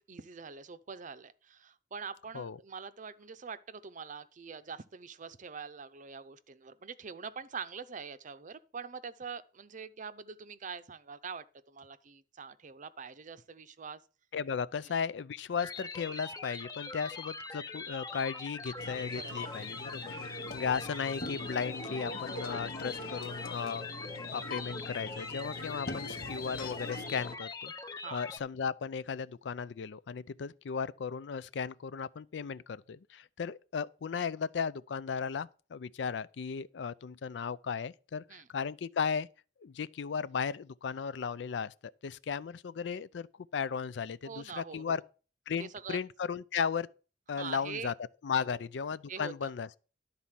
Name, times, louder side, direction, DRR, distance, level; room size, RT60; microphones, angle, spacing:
voice 1, 0.1-14.0 14.8-14.9 19.2-19.5 20.1-20.3 28.0-28.2 38.3-38.5 44.2-45.0 45.6-46.0 47.4-47.9 48.4-48.6 49.1-49.5, right 5 dB, 45° right, 0.6 m, -44 dB
voice 2, 14.3-23.9 24.3-27.7 28.1-39.3 39.6-41.7 42.0-43.3 43.5-45.0 45.5-46.9 47.3-47.9 48.2-49.8, left 6 dB, 70° left, 0.4 m, -36 dB
sound 1, 15.6-28.4, left 3 dB, 20° left, 0.7 m, -43 dB
sound 2, 18.8-27.4, left 2 dB, 55° left, 1.0 m, -42 dB
11.5 x 4.1 x 7.4 m
head